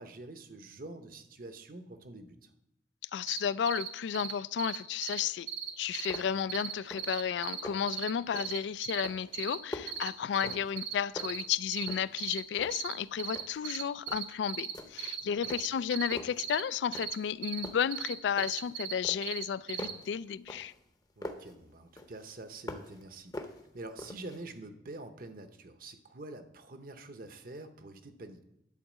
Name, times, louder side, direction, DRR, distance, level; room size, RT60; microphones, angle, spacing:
voice 1, 0.0-2.5 10.4-10.6 15.2-15.5 21.2-23.4 23.7-28.4, right 2 dB, 50° right, 0.8 m, -46 dB
voice 2, 3.1-5.5 5.8-20.7, left 8 dB, 70° left, 0.3 m, -33 dB
sound 1, 3.3-3.4 3.7-3.9 4.1-4.3 4.6-4.8 5.0-5.2 5.5-6.2 6.5-6.7 7.0-7.6 7.9-9.1 9.3-9.6 9.9-10.1 10.3-11.4 11.7-12.4 12.7-12.9 13.2-14.7 15.0-16.6 16.9-17.1 17.4-17.7 17.9-18.9 19.2-19.9, right 9 dB, 75° right, 1.6 m, -37 dB
sound 2, 5.6-5.7 6.1-6.5 6.8-7.2 7.5-8.0 8.3-8.7 9.0-10.9 11.2-12.2 12.5-13.7 14.1-14.3 14.7-15.2 15.5-16.4 16.9-17.3 17.6-18.7 19.0-21.5 22.0-23.0 23.3-24.4, left 1 dB, 20° left, 0.7 m, -44 dB
11.0 x 4.6 x 7.2 m
head